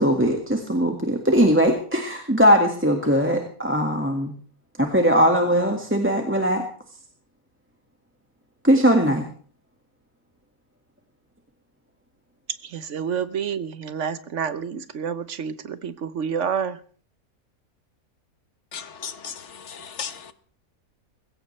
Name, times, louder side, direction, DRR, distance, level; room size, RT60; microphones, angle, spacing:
voice 1, 0.0-4.3 4.8-6.6 8.6-9.2, equal, 10° right, 2 dB, 1.8 m, -20 dB
voice 2, 12.6-16.8, right 7 dB, 60° right, 13 dB, 1.2 m, -29 dB
voice 3, 18.7-20.3, left 6 dB, 55° left, 11 dB, 1.3 m, -36 dB
20.5 x 16.5 x 3.3 m, 0.43 s
omnidirectional pair, 1.5 m